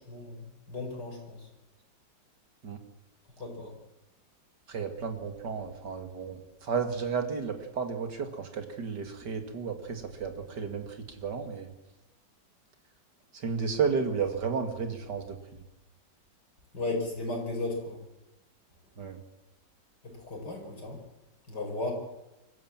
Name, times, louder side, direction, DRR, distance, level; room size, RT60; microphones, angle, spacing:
voice 1, 0.1-1.4 3.4-3.7 16.7-18.0 20.0-21.0 21.5-21.9, left 2 dB, 60° left, 1 dB, 6.1 m, -35 dB
voice 2, 4.7-10.8 11.2-11.7 13.4-15.4 19.0-19.2, right 5 dB, 65° right, 6 dB, 2.9 m, -32 dB
25.0 x 14.5 x 7.5 m, 0.96 s
omnidirectional pair, 2.0 m